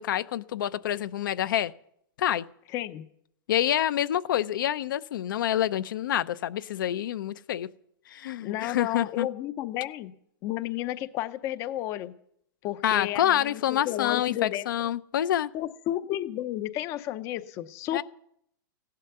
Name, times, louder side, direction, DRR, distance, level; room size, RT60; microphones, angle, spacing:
voice 1, 0.0-1.7 2.2-2.4 3.5-7.7 8.1-9.3 12.8-15.5 17.9-18.0, left 11 dB, 65° left, 13 dB, 0.6 m, -27 dB
voice 2, 2.7-3.1 8.4-10.1 10.4-12.1 12.6-14.7 15.5-18.0, left 14 dB, 25° left, 13 dB, 0.6 m, -32 dB
15.5 x 11.5 x 6.7 m, 0.72 s
hypercardioid pair, 160°, 12 cm